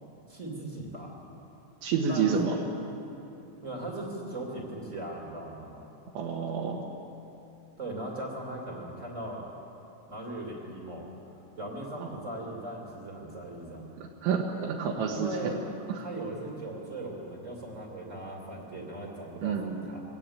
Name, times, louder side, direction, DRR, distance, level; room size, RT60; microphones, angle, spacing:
voice 1, 0.3-1.1 2.1-2.3 3.6-5.8 7.8-9.5 10.1-11.1 11.5-13.9 15.1-15.7 16.0-20.0, right 1 dB, 25° right, -1 dB, 1.6 m, -38 dB
voice 2, 1.8-2.6 6.2-6.8 12.0-12.1 14.0-15.5 15.9-16.1 19.4-19.9, right 6 dB, 75° right, -1 dB, 3.4 m, -29 dB
22.0 x 16.5 x 8.7 m, 2.9 s
omnidirectional pair, 5.9 m